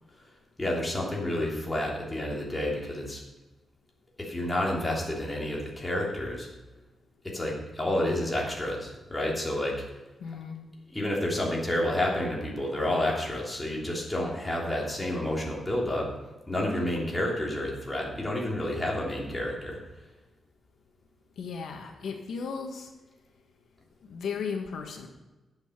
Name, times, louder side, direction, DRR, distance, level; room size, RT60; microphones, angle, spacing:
voice 1, 0.6-3.2 4.2-6.5 7.2-9.8 10.9-16.1 16.5-19.8, left 1 dB, 10° left, -3 dB, 3.2 m, -30 dB
voice 2, 10.2-10.6 21.4-22.9 24.1-25.1, left 5 dB, 75° left, 3 dB, 1.5 m, -35 dB
11.5 x 7.8 x 6.7 m, 1.2 s
wide cardioid pair, 145°, 0 cm